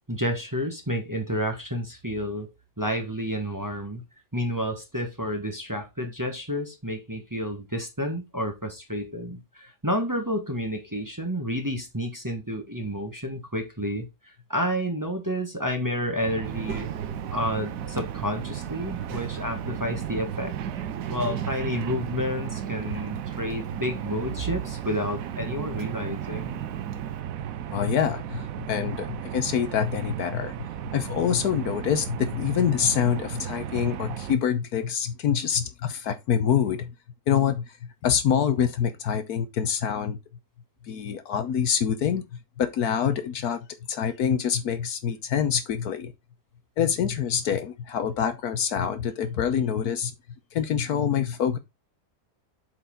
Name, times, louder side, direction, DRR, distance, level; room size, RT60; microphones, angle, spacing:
voice 1, 0.1-2.5 2.8-4.0 4.3-16.9 17.3-20.5 21.1-26.6, equal, 10° right, 1.3 m, -30 dB
sound 1, 16.2-34.4, right 10 dB, 65° right, 0.9 m, -35 dB
Child speech kid speaking, 16.4-27.2, right 8 dB, 90° right, 1.7 m, -38 dB
voice 2, 27.7-36.9 37.3-40.2 40.9-43.6 43.9-46.1 46.8-50.1 50.5-51.6, left 8 dB, 70° left, 1.3 m, -26 dB
7.9 x 4.8 x 3.9 m
omnidirectional pair, 1.8 m